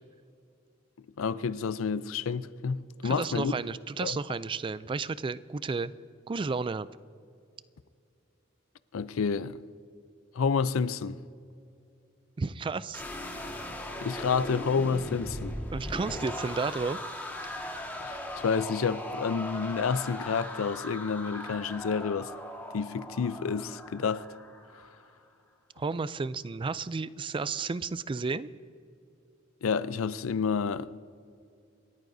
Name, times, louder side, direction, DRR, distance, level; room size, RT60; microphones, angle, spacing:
voice 1, 1.2-3.5 4.0-4.2 8.9-9.6 10.3-11.2 14.0-15.6 18.0-22.3 22.7-24.2 29.6-31.0, left 5 dB, 90° left, 0.5 m, -29 dB
voice 2, 3.0-5.9 6.3-6.9 12.4-13.0 15.7-17.0 25.8-28.5, right 4 dB, 25° right, 0.3 m, -32 dB
sound 1, 12.9-25.0, left 1 dB, 10° left, 1.6 m, -39 dB
28.5 x 14.0 x 2.7 m
head